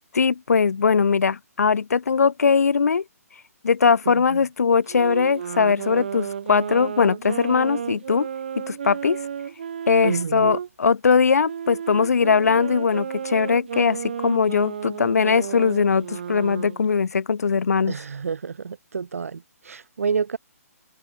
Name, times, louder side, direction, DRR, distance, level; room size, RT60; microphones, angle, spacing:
voice 1, 0.1-3.0 3.6-8.3 8.6-9.2 9.9-17.9, left 5 dB, 70° left, 2.1 m, -20 dB
voice 2, 4.1-4.4 10.0-10.5 17.9-20.4, right 6 dB, 60° right, 6.1 m, -29 dB
Wind instrument woodwind instrument, 4.9-10.7 11.4-16.8, right 8 dB, 40° right, 1.6 m, -32 dB
hypercardioid pair, 180°, 9 cm